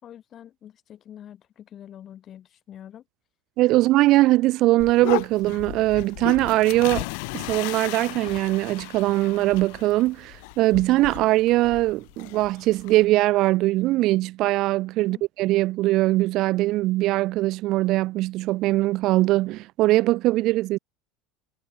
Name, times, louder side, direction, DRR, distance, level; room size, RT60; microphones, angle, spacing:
voice 1, 0.0-3.0 15.1-15.2, left 10 dB, 40° left, 7.1 m, -45 dB
voice 2, 3.6-7.1 7.3-20.8, right 17 dB, 55° right, 1.3 m, -21 dB
sound 1, 4.8-13.0, left 34 dB, 70° left, 1.1 m, -35 dB
supercardioid pair, 105°, 0 cm